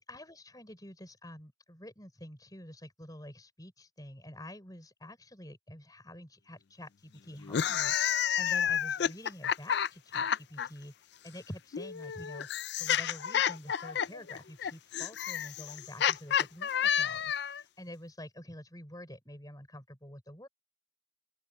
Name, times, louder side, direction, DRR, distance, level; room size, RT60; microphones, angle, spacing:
voice 1, 0.0-10.9 11.2-12.5 12.8-20.5, left 1 dB, 20° left, 5.9 m, -48 dB
sound 1, 7.4-10.7 11.7-17.6, left 9 dB, 55° left, 0.4 m, -30 dB
open air
head